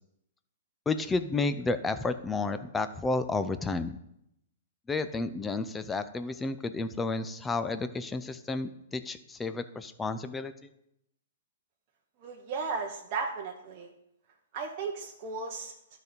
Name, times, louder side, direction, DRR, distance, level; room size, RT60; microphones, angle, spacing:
voice 1, 0.9-4.0 4.9-10.5, left 3 dB, 10° left, 10 dB, 0.5 m, -31 dB
voice 2, 12.2-13.9 14.5-15.7, right 4 dB, 40° right, 0 dB, 0.9 m, -35 dB
12.0 x 4.1 x 5.2 m, 0.78 s
hypercardioid pair, 140°, 0 cm